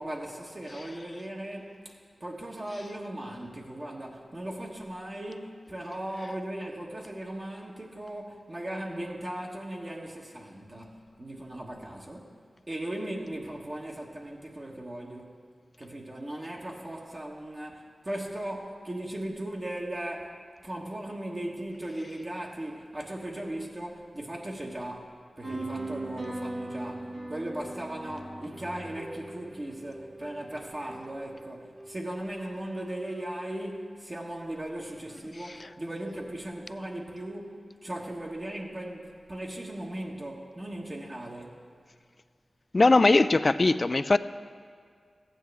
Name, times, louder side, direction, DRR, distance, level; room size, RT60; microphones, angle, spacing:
voice 1, 0.0-1.9 2.2-12.4 12.7-15.4 15.8-20.4 20.6-41.7, right 1 dB, 40° right, -2 dB, 1.2 m, -38 dB
sound 1, 25.4-32.3, right 2 dB, 75° right, 1.5 m, -40 dB
voice 2, 42.7-44.2, left 3 dB, 50° left, 14 dB, 0.3 m, -20 dB
14.5 x 9.1 x 3.4 m, 2.1 s
cardioid pair, 45°, 0 cm